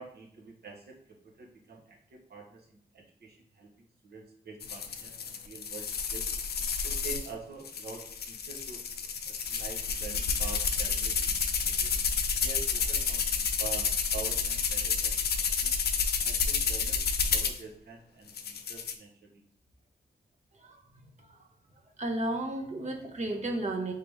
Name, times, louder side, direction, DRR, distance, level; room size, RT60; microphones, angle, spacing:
voice 1, 0.0-6.3 6.8-8.8 9.3-11.9 12.4-15.8 16.2-19.4, right 4 dB, 70° right, 1 dB, 0.9 m, -46 dB
sound 1, 4.6-7.3 7.6-17.6 18.3-18.9, left 6 dB, 65° left, 0.5 m, -30 dB
voice 2, 22.0-23.9, right 1 dB, 40° right, 2 dB, 0.8 m, -33 dB
3.4 x 2.9 x 3.3 m, 0.66 s
cardioid pair, 50°, 17 cm